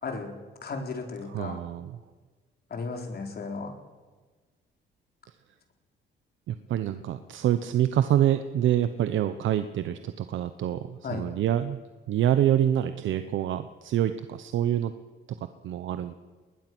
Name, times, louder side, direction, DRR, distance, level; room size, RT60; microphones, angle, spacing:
voice 1, 0.0-0.3 0.6-1.7 2.7-3.7 11.0-11.3, left 4 dB, 50° left, 3 dB, 4.2 m, -35 dB
voice 2, 1.3-2.0 6.5-11.8 12.1-14.9 15.6-16.1, right 11 dB, 75° right, 10 dB, 1.0 m, -26 dB
22.0 x 20.0 x 6.2 m, 1.3 s
cardioid pair, 90°, 20 cm